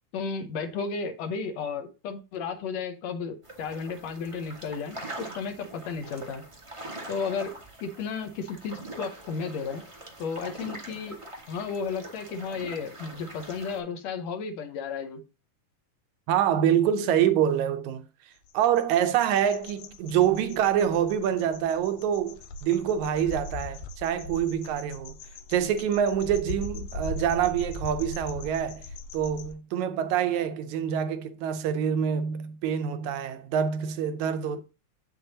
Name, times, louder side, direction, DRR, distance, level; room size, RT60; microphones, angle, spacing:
voice 1, 0.1-6.4 7.1-7.5 7.8-9.8 10.2-11.2 11.5-15.2, left 5 dB, 65° left, 1.9 m, -33 dB
sound 1, 3.4-13.8, right 1 dB, 55° right, 0.3 m, -43 dB
voice 2, 16.3-18.1 18.5-25.1 25.5-28.8 29.1-34.6, right 9 dB, 75° right, 1.9 m, -26 dB
sound 2, 18.5-29.5, left 2 dB, 85° left, 2.4 m, -40 dB
8.3 x 7.0 x 2.8 m
omnidirectional pair, 3.8 m